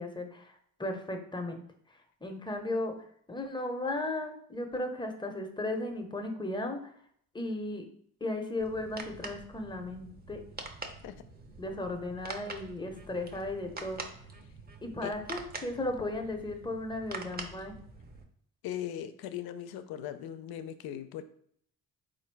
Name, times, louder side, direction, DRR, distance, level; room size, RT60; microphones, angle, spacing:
voice 1, 0.0-1.6 1.9-2.9 3.3-6.9 7.3-7.9 8.2-10.4 11.6-14.0 14.8-17.7, left 2 dB, 15° left, 4 dB, 0.7 m, -35 dB
sound 1, 8.6-18.2, right 3 dB, 25° right, 0.6 m, -45 dB
voice 2, 18.6-21.2, left 10 dB, 85° left, 11 dB, 0.5 m, -39 dB
3.9 x 2.5 x 4.5 m, 0.64 s
cardioid pair, 90°, 36 cm